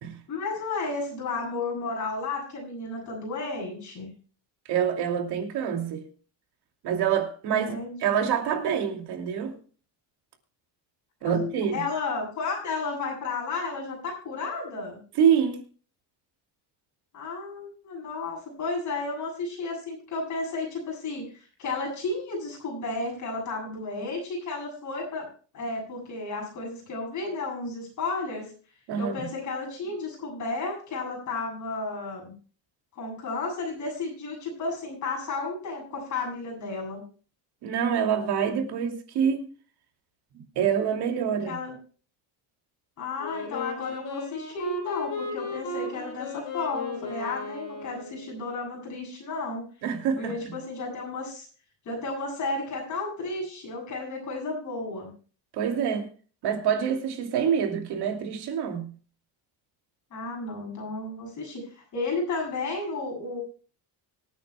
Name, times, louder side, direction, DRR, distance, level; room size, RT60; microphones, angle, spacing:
voice 1, 0.3-4.1 7.5-8.2 11.2-15.0 17.1-25.3 25.5-28.5 29.0-32.3 33.0-37.0 41.5-41.7 43.0-49.6 50.2-51.5 51.8-55.1 60.1-63.4, left 3 dB, 45° left, 7.8 m, -33 dB
voice 2, 4.7-6.0 6.8-9.5 11.2-11.8 15.2-15.6 28.9-29.3 37.6-39.5 40.5-41.6 49.8-50.5 55.5-56.1 56.4-58.9, right 8 dB, 65° right, 2.7 m, -26 dB
Wind instrument woodwind instrument, 43.2-48.4, left 3 dB, 70° left, 5.9 m, -35 dB
25.5 x 9.0 x 2.3 m
cardioid pair, 180°, 42 cm